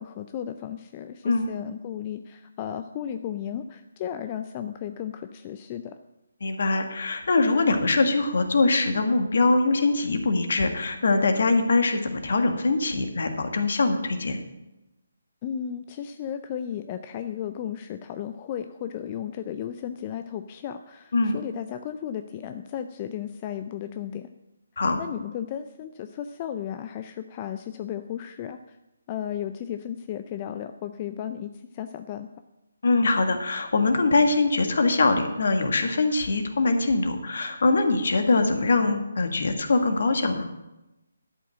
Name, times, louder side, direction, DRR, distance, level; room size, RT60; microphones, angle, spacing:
voice 1, 0.0-6.0 15.4-24.3 25.0-28.8 29.1-32.3, left 9 dB, 30° left, 9 dB, 0.5 m, -34 dB
voice 2, 6.4-14.4 21.1-21.3 24.8-25.0 32.8-40.5, left 3 dB, 60° left, 6 dB, 1.6 m, -23 dB
12.5 x 5.5 x 7.5 m, 0.98 s
figure-of-eight pair, 150°, 0 cm